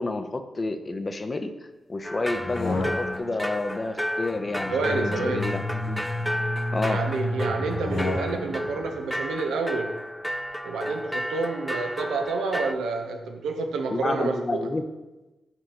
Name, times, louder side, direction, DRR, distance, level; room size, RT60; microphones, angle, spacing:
voice 1, 0.0-1.5 1.9-6.0 6.7-7.0 13.9-14.8, left 2 dB, 40° left, 8 dB, 0.7 m, -30 dB
sound 1, 2.0-12.7, equal, ahead, 0.3 m, -32 dB
sound 2, 2.3-3.4 4.7-6.3 7.7-8.7, left 2 dB, 85° left, 1.8 m, -33 dB
sound 3, 4.4-9.2, left 1 dB, 55° left, 1.1 m, -32 dB
voice 2, 4.7-5.5 6.8-10.0 10.6-14.7, right 4 dB, 80° right, 4 dB, 0.7 m, -29 dB
6.3 x 4.8 x 4.3 m, 1.1 s
supercardioid pair, 40°, 0 cm